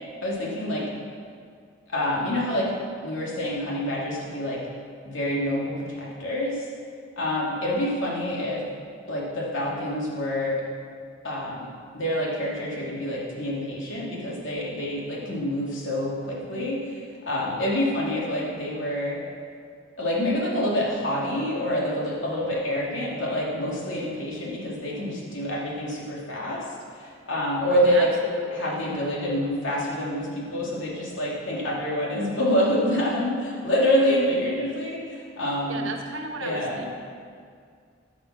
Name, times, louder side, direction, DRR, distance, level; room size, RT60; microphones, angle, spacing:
voice 1, 0.2-0.9 1.9-2.7 3.0-4.6 5.0-6.7 7.2-8.6 9.1-10.6 11.2-11.7 11.9-19.2 20.0-26.6 27.0-28.1 28.5-35.8 36.4-36.9, left 1 dB, 75° left, -4 dB, 2.7 m, -27 dB
voice 2, 27.7-28.8 35.7-36.9, right 2 dB, 85° right, 2 dB, 1.3 m, -35 dB
14.0 x 6.0 x 6.1 m, 2.2 s
head